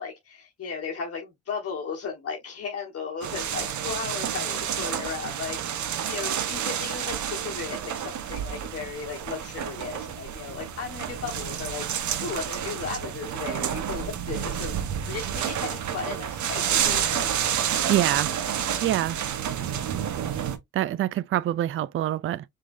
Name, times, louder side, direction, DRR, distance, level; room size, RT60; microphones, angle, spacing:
voice 1, 0.0-14.8 15.1-17.4, left 5 dB, 50° left, 1.5 m, -36 dB
sound 1, 3.2-20.6, right 9 dB, 70° right, 1.1 m, -29 dB
voice 2, 17.9-18.3 18.8-19.2 20.7-22.4, right 13 dB, 45° right, 0.4 m, -25 dB
4.8 x 3.7 x 2.6 m
cardioid pair, 90°, 30 cm